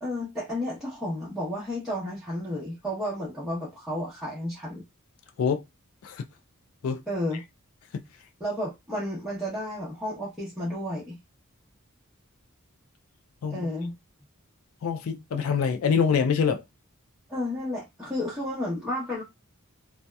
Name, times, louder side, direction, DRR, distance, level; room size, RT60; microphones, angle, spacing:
voice 1, 0.0-4.8 7.1-7.4 8.4-11.2 13.5-13.9 17.3-19.2, left 1 dB, 5° right, 0.7 m, -32 dB
voice 2, 14.8-16.6, left 6 dB, 70° left, 0.4 m, -25 dB
2.7 x 2.0 x 2.2 m
head